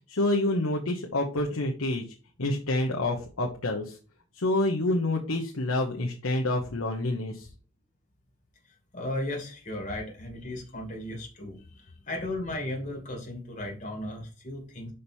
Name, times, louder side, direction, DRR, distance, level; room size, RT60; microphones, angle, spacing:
voice 1, 0.1-2.0 2.4-4.0 4.3-7.5, left 2 dB, 75° left, 0 dB, 1.0 m, -27 dB
voice 2, 8.9-14.9, left 1 dB, 35° left, 1 dB, 2.2 m, -35 dB
5.5 x 5.1 x 4.5 m, 0.36 s
head